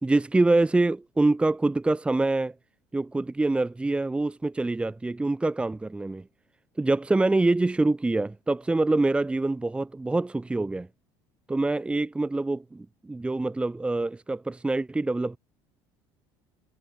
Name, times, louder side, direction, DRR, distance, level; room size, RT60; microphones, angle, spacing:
voice 1, 0.0-2.5 2.9-6.3 6.8-10.9 11.5-15.4, right 2 dB, 10° right, 1.7 m, -25 dB
supercardioid pair, 110°, 10 cm